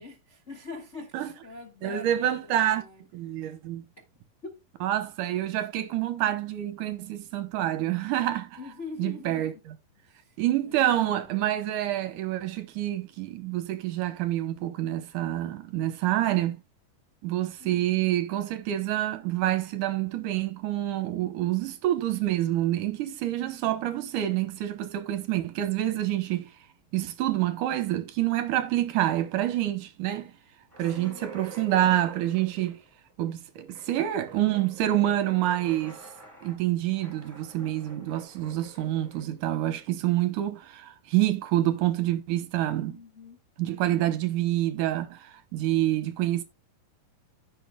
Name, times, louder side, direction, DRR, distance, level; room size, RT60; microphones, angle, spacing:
voice 1, 0.0-3.4 4.0-4.1 4.4-4.6 8.6-9.6 10.0-10.4 10.6-11.3 17.6-18.0 30.8-31.2 42.9-43.4, left 3 dB, 70° left, 0.6 m, -44 dB
voice 2, 1.8-2.8 3.1-3.8 4.8-8.6 9.0-9.5 10.4-16.6 17.2-26.5 26.9-30.3 30.8-32.8 33.2-36.0 36.4-43.0 43.6-46.4, right 13 dB, 70° right, 2.3 m, -27 dB
sound 1, 30.7-40.1, right 3 dB, 5° right, 6.8 m, -47 dB
15.5 x 6.6 x 2.3 m
omnidirectional pair, 4.0 m